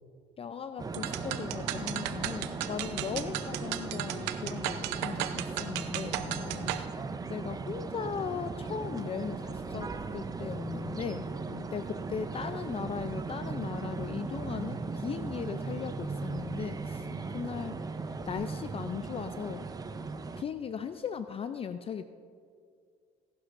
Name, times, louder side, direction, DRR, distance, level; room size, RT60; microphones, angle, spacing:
voice 1, 0.4-6.2 7.3-11.3 11.7-17.1 17.3-17.8 18.3-19.7 20.4-22.0, left 7 dB, 35° left, 10 dB, 0.4 m, -38 dB
sound 1, 0.8-20.4, right 4 dB, 20° right, 0.7 m, -38 dB
sound 2, 0.9-6.9, right 12 dB, 85° right, 0.7 m, -35 dB
voice 2, 6.0-6.9 11.5-11.8 17.0-17.5, left 5 dB, 80° left, 1 dB, 1.5 m, -46 dB
18.0 x 11.5 x 2.6 m, 2.3 s
supercardioid pair, 95°, 17 cm